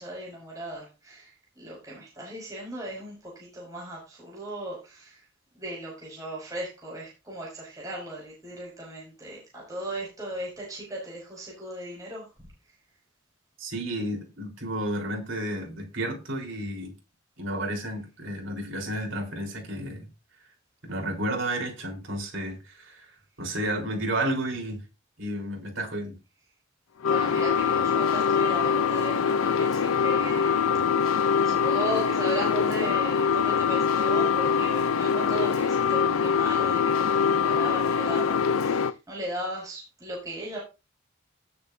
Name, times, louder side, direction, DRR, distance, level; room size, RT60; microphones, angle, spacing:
voice 1, 0.0-5.2 5.5-12.3 27.0-30.7 31.0-31.2 31.4-40.6, right 1 dB, 15° right, -4 dB, 5.9 m, -37 dB
voice 2, 13.6-16.9 17.4-20.1 20.8-23.1 23.4-24.8 25.2-26.2, right 1 dB, 65° right, 2 dB, 3.9 m, -31 dB
sound 1, 27.0-38.9, left 6 dB, 90° left, 0.5 m, -24 dB
18.0 x 7.2 x 2.6 m, 0.28 s
head